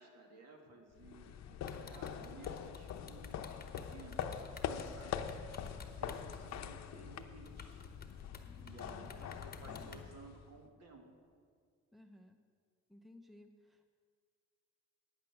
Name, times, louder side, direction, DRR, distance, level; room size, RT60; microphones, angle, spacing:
voice 1, 0.0-3.6 3.9-5.4 5.8-7.8 8.6-11.0, right 3 dB, 60° right, 1 dB, 2.1 m, -57 dB
sound 1, 1.0-10.6, left 8 dB, 60° left, 0.7 m, -44 dB
sound 2, 1.6-6.5 7.0-7.1 7.5-10.0, left 5 dB, 30° left, 1.1 m, -54 dB
voice 2, 8.4-9.2 9.6-10.1 11.9-12.4 12.9-13.9, left 1 dB, ahead, 7 dB, 0.6 m, -59 dB
9.7 x 8.5 x 6.0 m, 2.1 s
cardioid pair, 90°, 30 cm